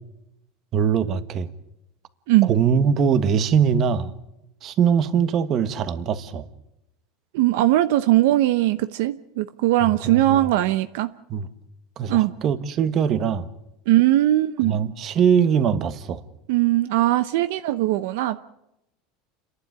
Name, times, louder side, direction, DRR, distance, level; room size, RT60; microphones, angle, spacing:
voice 1, 0.7-1.5 2.5-4.1 4.6-6.4 10.0-10.5 11.3-11.5 12.0-13.5 14.6-16.2, right 7 dB, 35° right, 1.4 m, -22 dB
voice 2, 7.3-11.1 12.1-12.3 13.9-14.8 16.5-18.4, right 15 dB, 70° right, 0.8 m, -20 dB
29.5 x 11.5 x 9.8 m
supercardioid pair, 150°, 0 cm